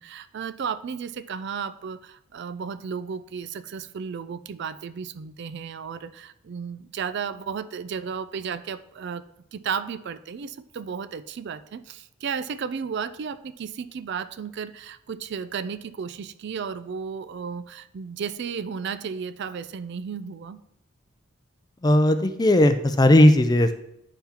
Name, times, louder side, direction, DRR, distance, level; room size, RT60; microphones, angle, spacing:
voice 1, 0.0-9.2 9.5-20.6, right 6 dB, 50° right, 13 dB, 0.3 m, -34 dB
voice 2, 21.8-23.7, left 1 dB, 20° left, 9 dB, 0.4 m, -17 dB
9.8 x 5.8 x 2.9 m, 0.78 s
head